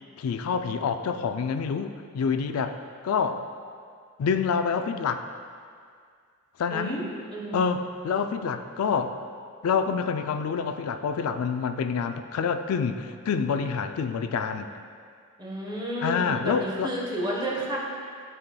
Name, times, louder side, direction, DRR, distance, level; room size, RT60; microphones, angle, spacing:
voice 1, 0.2-2.8 3.0-3.4 4.2-5.2 6.6-7.0 7.5-9.2 9.6-14.7 16.0-16.9, left 6 dB, 80° left, 8 dB, 0.3 m, -27 dB
voice 2, 6.7-7.7 15.4-17.8, right 1 dB, 20° right, -4 dB, 1.0 m, -31 dB
10.5 x 4.2 x 2.2 m, 2.1 s
head